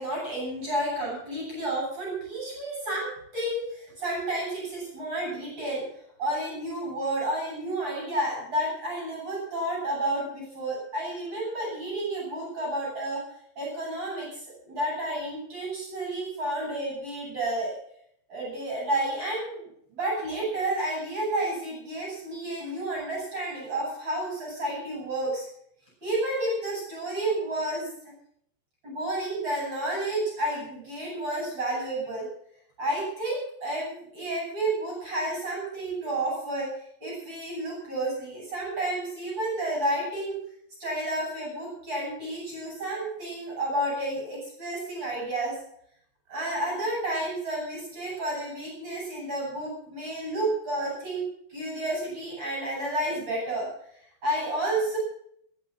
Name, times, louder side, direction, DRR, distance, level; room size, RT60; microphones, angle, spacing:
voice 1, 0.0-5.9 6.2-13.2 13.6-17.8 18.3-25.5 26.0-28.1 28.8-32.3 32.8-36.7 37.0-40.4 40.8-45.6 46.3-53.7 54.2-55.0, right 1 dB, 25° right, -3 dB, 8.3 m, -31 dB
21.0 x 9.7 x 6.0 m, 0.68 s
omnidirectional pair, 5.3 m